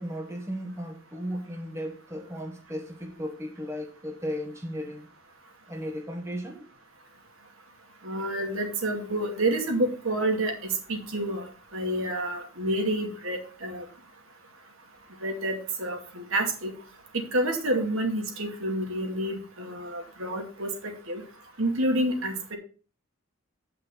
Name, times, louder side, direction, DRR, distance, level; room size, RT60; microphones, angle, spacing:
voice 1, 0.0-5.1 5.7-6.7 21.4-21.5, equal, 10° right, 1.1 m, -35 dB
voice 2, 8.0-13.8 15.2-16.7 17.1-20.7 21.1-21.2 21.6-22.6, right 1 dB, 65° right, 2.4 m, -29 dB
8.7 x 5.9 x 5.5 m
head